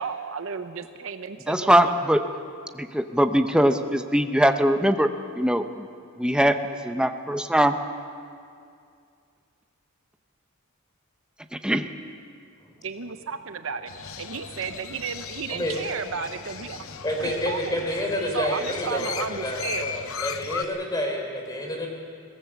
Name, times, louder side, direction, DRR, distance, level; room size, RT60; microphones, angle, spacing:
voice 1, 0.0-2.0 12.8-13.9 14.2-16.8 17.2-17.8 18.3-20.1, right 5 dB, 65° right, 9 dB, 0.8 m, -33 dB
voice 2, 1.5-2.2 2.8-5.1 5.4-5.9 6.2-6.6 6.8-7.8 11.5-11.9, equal, 5° right, 7 dB, 0.8 m, -21 dB
Crow, 13.9-20.6, left 7 dB, 70° left, 0.8 m, -37 dB
voice 3, 17.0-19.1 19.4-21.9, equal, 20° left, 1 dB, 3.6 m, -29 dB
22.0 x 17.5 x 7.3 m, 2.3 s
head